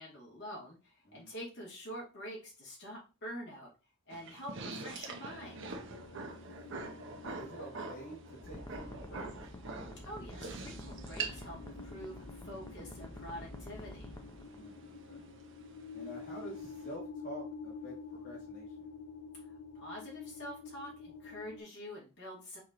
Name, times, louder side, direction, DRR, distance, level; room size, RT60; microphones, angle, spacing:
voice 1, 0.0-3.7 4.1-5.7 10.0-14.1 19.4-22.6, equal, 60° left, -3 dB, 2.2 m, -46 dB
sound 1, 4.1-16.9, right 4 dB, 65° right, 0.8 m, -45 dB
sound 2, 5.3-21.6, left 4 dB, 75° left, 0.6 m, -49 dB
voice 2, 5.9-6.3 7.2-9.3 14.4-15.3 15.9-18.9, right 1 dB, 45° left, -6 dB, 1.5 m, -49 dB
sound 3, 8.4-14.9, left 1 dB, 15° left, 0.5 m, -48 dB
4.5 x 3.1 x 3.8 m, 0.32 s
head